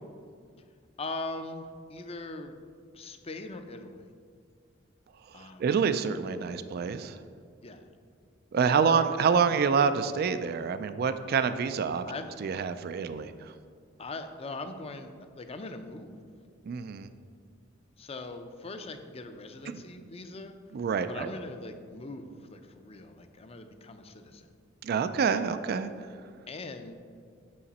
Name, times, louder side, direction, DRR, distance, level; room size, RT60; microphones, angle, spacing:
voice 1, 1.0-2.5 2.9-4.1 5.3-5.7 7.6-7.9 8.5-9.1 9.5-9.8 12.1-12.3 14.0-16.1 18.0-20.6 21.0-24.5 26.5-27.0, left 2 dB, 30° left, 7 dB, 0.5 m, -41 dB
voice 2, 5.6-7.2 8.5-12.0 12.4-13.3 16.7-17.1 19.7-19.8 20.7-21.3 24.8-25.9, right 6 dB, 50° right, 11 dB, 0.3 m, -27 dB
8.6 x 5.8 x 4.1 m, 2.2 s
head